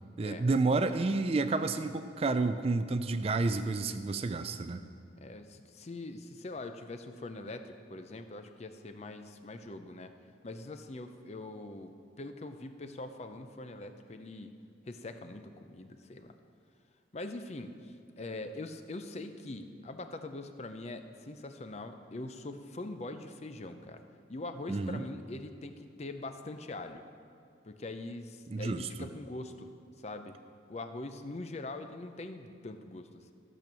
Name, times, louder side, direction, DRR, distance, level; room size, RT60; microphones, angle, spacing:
voice 1, 0.2-4.8 24.7-25.0 28.5-29.1, right 3 dB, 30° right, 10 dB, 0.3 m, -30 dB
voice 2, 5.2-10.1 10.4-14.5 14.9-16.3 17.1-24.0 24.3-27.0 27.6-29.7 30.0-30.4 30.7-33.3, left 2 dB, 35° left, 8 dB, 0.5 m, -43 dB
13.5 x 7.0 x 6.0 m, 2.3 s
head